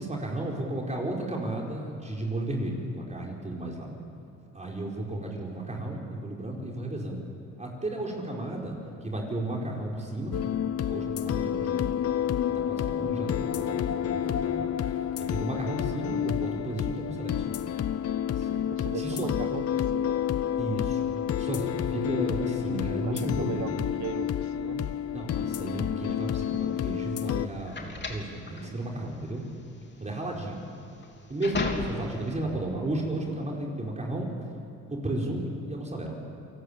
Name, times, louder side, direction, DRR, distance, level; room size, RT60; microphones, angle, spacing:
voice 1, 0.0-3.9 4.5-7.2 7.6-8.8 9.0-10.3 10.8-12.0 12.5-14.7 15.2-17.6 18.3-18.6 18.9-19.3 20.6-21.1 21.3-23.6 25.1-29.5 30.0-30.7 31.3-34.3 34.9-35.4 35.7-36.2, right 1 dB, 25° right, -1 dB, 4.9 m, -33 dB
sound 1, 10.3-27.5, left 10 dB, 50° left, 0.8 m, -29 dB
voice 2, 18.7-20.2 23.0-24.9, right 9 dB, 70° right, 11 dB, 1.5 m, -39 dB
sound 2, 26.3-32.3, left 4 dB, 35° left, 3.3 m, -35 dB
29.0 x 18.5 x 8.8 m, 2.9 s
cardioid pair, 90°, 30 cm